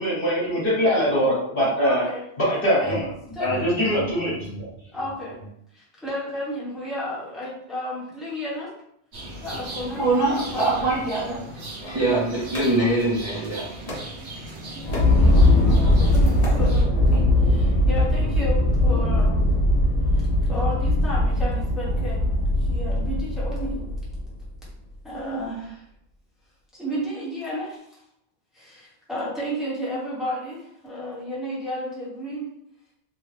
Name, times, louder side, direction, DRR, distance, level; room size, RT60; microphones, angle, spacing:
voice 1, 0.0-2.0 2.4-3.1 3.4-4.7, equal, 55° left, -7 dB, 1.4 m, -22 dB
voice 2, 1.8-2.2 2.8-3.0 3.3-3.6 4.9-5.4 5.7-8.7 9.4-11.0 14.7-15.0 15.3-19.4 20.1-23.8 25.0-25.8 26.7-28.0 28.5-32.5, equal, ahead, -7 dB, 0.9 m, -33 dB
sound 1, 9.1-16.8, right 1 dB, 75° right, 1.1 m, -38 dB
voice 3, 10.0-11.4 11.9-13.7, right 2 dB, 30° right, -7 dB, 0.5 m, -23 dB
sound 2, 11.8-13.3 13.8-14.2 14.7-15.2 16.0-16.6 16.9-17.2, left 1 dB, 40° left, 0.7 m, -36 dB
sound 3, 14.8-24.4, left 1 dB, 85° left, 1.1 m, -20 dB
3.1 x 2.2 x 3.2 m, 0.73 s
omnidirectional pair, 1.2 m